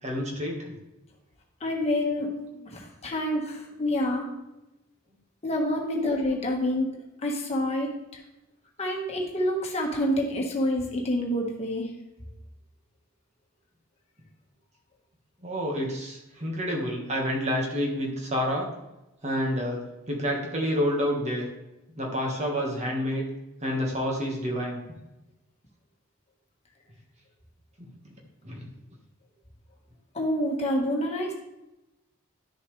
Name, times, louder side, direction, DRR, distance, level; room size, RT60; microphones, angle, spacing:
voice 1, 0.0-0.8 15.4-18.7 19.2-21.5 22.0-23.3 23.6-24.8 27.8-28.1 28.4-28.7, equal, 30° right, -1 dB, 1.5 m, -29 dB
voice 2, 1.6-2.3 2.7-4.3 5.4-6.9 7.2-7.9 8.8-11.9 30.1-31.3, left 1 dB, 30° left, -1 dB, 1.5 m, -27 dB
11.0 x 6.9 x 3.3 m, 0.96 s
head